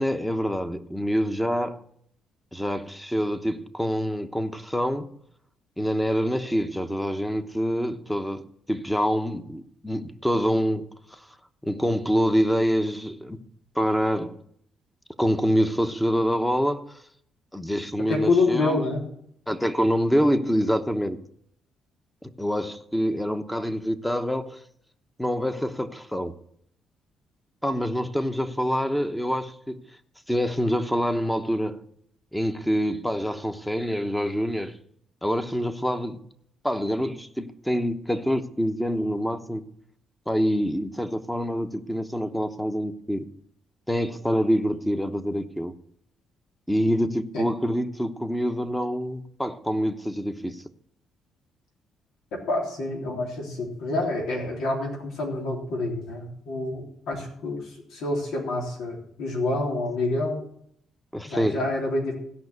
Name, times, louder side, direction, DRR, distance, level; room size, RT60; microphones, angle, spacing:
voice 1, 0.0-1.8 2.5-5.2 5.8-11.2 11.6-13.4 13.7-14.4 15.2-17.0 17.5-18.8 19.5-21.2 22.2-24.6 25.2-26.4 27.6-29.9 30.3-31.8 32.3-34.8 35.2-36.2 36.6-39.6 40.3-43.3 43.9-45.7 46.7-50.6 61.1-61.6, equal, 5° left, 1.0 m, -26 dB
voice 2, 18.1-19.0 47.3-47.4 52.3-60.4 61.2-62.1, left 2 dB, 85° left, 3.4 m, -27 dB
16.0 x 5.9 x 8.1 m
cardioid pair, 90°, 0 cm